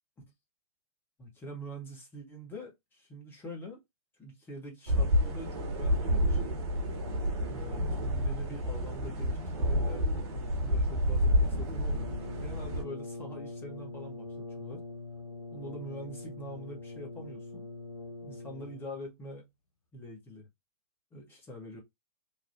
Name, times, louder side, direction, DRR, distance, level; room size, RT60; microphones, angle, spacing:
voice 1, 1.2-3.8 4.2-6.5 7.5-12.1 12.4-14.8 15.5-17.6 18.2-19.5 19.9-20.5 21.1-21.8, equal, 10° left, 1.0 m, -44 dB
sound 1, 4.9-12.8, equal, 50° right, 1.2 m, -29 dB
Brass instrument, 11.9-19.0, left 3 dB, 75° left, 0.6 m, -43 dB
3.0 x 2.2 x 2.7 m
figure-of-eight pair, 110°, 19 cm